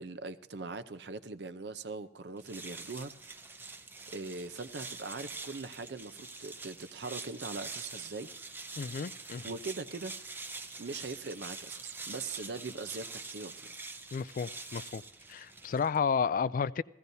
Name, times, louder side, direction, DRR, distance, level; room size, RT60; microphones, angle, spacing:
voice 1, 0.0-3.1 4.1-8.3 9.4-10.4 10.8-13.7, right 3 dB, 70° right, 0.6 m, -41 dB
sound 1, 2.4-16.0, right 3 dB, 10° right, 0.5 m, -45 dB
voice 2, 8.8-9.5 14.1-15.0 15.3-16.8, left 6 dB, 50° left, 0.3 m, -32 dB
16.0 x 15.5 x 2.7 m
head